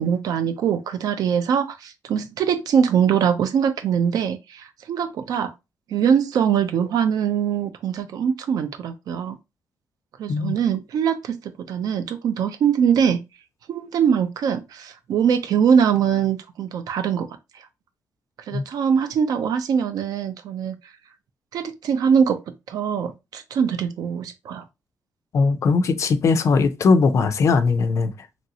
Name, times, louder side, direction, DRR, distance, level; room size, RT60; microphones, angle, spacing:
voice 1, 0.0-5.5 5.9-9.4 10.2-13.2 13.7-17.3 18.5-20.8 21.5-22.4 22.7-24.6, right 7 dB, 70° right, 0.4 m, -22 dB
voice 2, 25.3-28.1, left 4 dB, 50° left, 0.4 m, -19 dB
3.0 x 2.6 x 2.7 m
wide cardioid pair, 150°, 7 cm